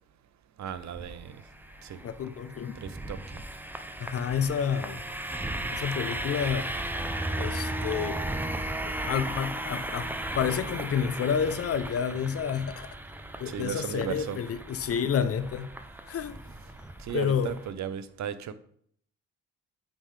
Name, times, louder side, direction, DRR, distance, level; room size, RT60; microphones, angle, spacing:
voice 1, 0.6-1.4 1.8-2.0 2.8-3.4 13.5-14.4 17.0-18.5, right 8 dB, 60° right, 0.6 m, -36 dB
sound 1, 0.7-17.7, right 1 dB, 5° right, 0.5 m, -36 dB
voice 2, 2.0-2.7 4.0-5.0 5.7-6.7 7.4-8.2 9.0-12.9 13.4-15.7 16.1-16.4 17.1-17.5, left 7 dB, 45° left, 0.5 m, -29 dB
8.7 x 3.6 x 3.2 m
supercardioid pair, 70°, 32 cm